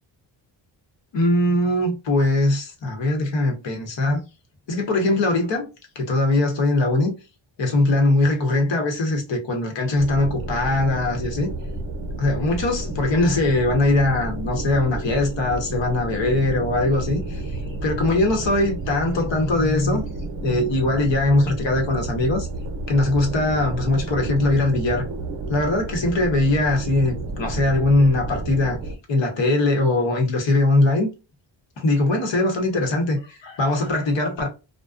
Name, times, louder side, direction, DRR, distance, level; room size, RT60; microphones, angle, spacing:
voice 1, 1.1-4.2 4.7-5.7 5.9-7.1 7.6-11.5 12.2-20.1 20.4-22.5 22.9-25.0 25.5-28.8 29.1-31.1 31.8-34.5, left 2 dB, 70° left, 1.0 m, -21 dB
sound 1, 10.0-29.0, right 2 dB, 50° right, 0.6 m, -31 dB
2.5 x 2.1 x 2.3 m
cardioid pair, 95°, 45 cm